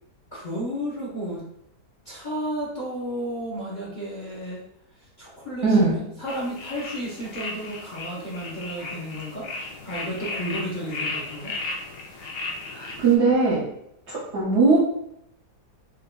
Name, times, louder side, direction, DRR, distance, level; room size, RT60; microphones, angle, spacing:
voice 1, 0.3-1.5 2.0-4.6 5.0-11.5, equal, 45° left, -7 dB, 0.6 m, -33 dB
voice 2, 5.6-6.0 12.7-13.7 14.1-14.8, right 4 dB, 60° right, -6 dB, 0.7 m, -20 dB
sound 1, 6.3-13.2, left 3 dB, 85° left, 1.2 m, -35 dB
3.7 x 2.6 x 2.2 m, 0.77 s
omnidirectional pair, 1.8 m